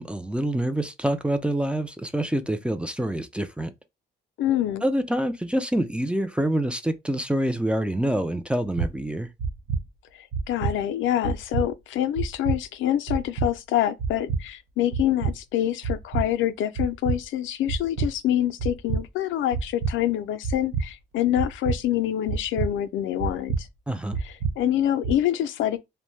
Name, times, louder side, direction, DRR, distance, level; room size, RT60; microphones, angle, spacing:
voice 1, 0.0-3.7 4.8-9.3 23.9-24.2, right 1 dB, 5° right, 0.3 m, -26 dB
voice 2, 4.4-4.8 10.2-23.7 24.2-25.8, left 11 dB, 75° left, 0.4 m, -26 dB
sound 1, 8.8-8.9 9.4-9.8 10.3-10.7 11.2-11.6 12.2-12.6 13.1-13.5 14.0-14.4 14.9-15.3 15.8-16.3 16.8-17.2 17.7-18.1 18.6-19.0 19.5-19.9 20.4-20.8 21.4-21.8 22.3-22.7 23.2-23.6 24.1-24.5 25.0-25.1, right 5 dB, 75° right, 0.7 m, -26 dB
2.6 x 2.1 x 3.1 m
cardioid pair, 90°, 20 cm